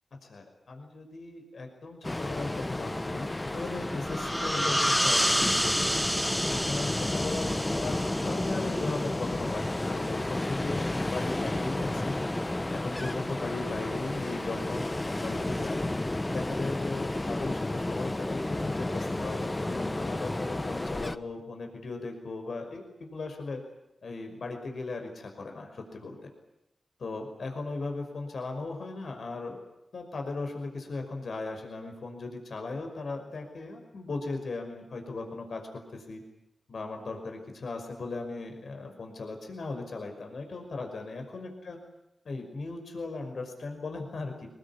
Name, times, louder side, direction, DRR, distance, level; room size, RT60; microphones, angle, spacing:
voice 1, 0.2-6.0 6.5-12.2 12.7-15.9 16.3-23.6 24.0-26.3 27.0-29.6 29.9-35.6 35.9-36.2 36.7-41.8 42.3-44.5, left 3 dB, 80° left, 4 dB, 5.6 m, -37 dB
Ocean, 2.0-21.2, left 2 dB, 30° left, 1.3 m, -32 dB
sound 1, 4.0-9.4, equal, ahead, 1.0 m, -29 dB
22.5 x 21.5 x 9.8 m, 0.89 s
cardioid pair, 45°, 0 cm